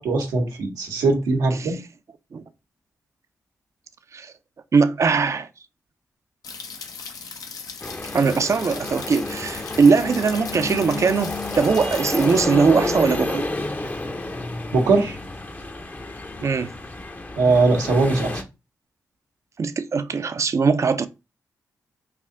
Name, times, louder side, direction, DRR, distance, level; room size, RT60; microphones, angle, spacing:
voice 1, 0.0-1.8 14.7-15.2 17.4-18.4, right 3 dB, 90° right, 0.8 m, -20 dB
voice 2, 1.5-1.8 2.3-2.4 4.1-4.3 4.7-5.5 8.1-13.5 16.4-16.7 19.6-21.1, right 5 dB, 50° right, 0.4 m, -20 dB
sound 1, 6.4-12.4, left 5 dB, 70° left, 0.6 m, -38 dB
sound 2, 7.8-18.4, left 2 dB, 25° left, 0.6 m, -30 dB
3.3 x 2.5 x 3.7 m
supercardioid pair, 45°, 6 cm